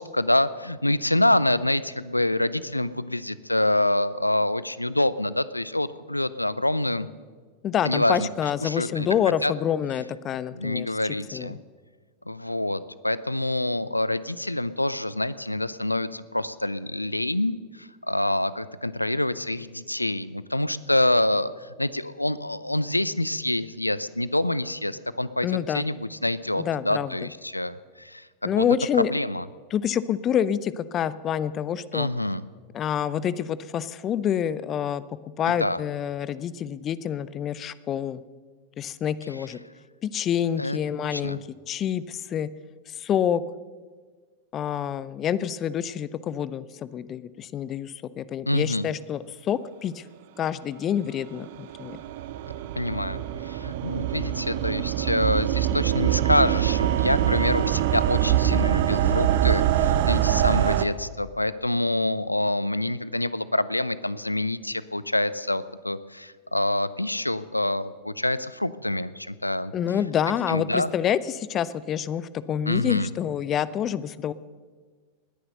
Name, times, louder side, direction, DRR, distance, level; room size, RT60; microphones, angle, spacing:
voice 1, 0.0-7.1 7.8-8.3 8.6-9.1 9.4-9.5 10.5-11.6 12.3-28.6 29.1-29.4 31.9-32.4 35.5-35.8 40.6-41.4 48.5-48.9 52.8-69.7 70.5-70.9 72.7-73.1, left 1 dB, 85° left, 17 dB, 0.5 m, -26 dB
voice 2, 7.6-10.9 11.3-11.6 25.4-25.9 26.6-27.3 28.4-29.1 29.7-32.1 32.7-35.0 35.4-38.2 38.8-39.6 40.0-41.4 41.7-42.5 42.9-43.4 44.5-50.0 50.4-52.0 69.7-74.3, left 9 dB, 30° left, 17 dB, 0.6 m, -27 dB
sound 1, 51.2-60.9, right 11 dB, 50° right, 0.8 m, -24 dB
20.0 x 10.0 x 6.6 m, 1.5 s
figure-of-eight pair, 90°, 0 cm